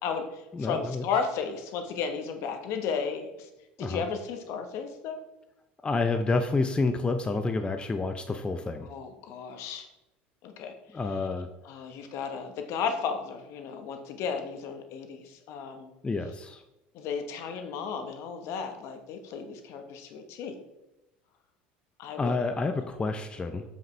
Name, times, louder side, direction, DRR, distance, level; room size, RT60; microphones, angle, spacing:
voice 1, 0.0-3.5 3.8-5.2 8.8-9.9 10.4-11.3 11.6-15.9 16.9-20.6 22.0-22.3 22.7-22.8, left 6 dB, 60° left, 6 dB, 1.0 m, -34 dB
voice 2, 0.5-1.0 3.8-4.0 5.8-8.9 10.9-11.5 16.0-16.6 22.2-23.6, left 3 dB, 20° left, 8 dB, 0.5 m, -29 dB
7.5 x 5.1 x 3.2 m, 0.95 s
hypercardioid pair, 90°, 5 cm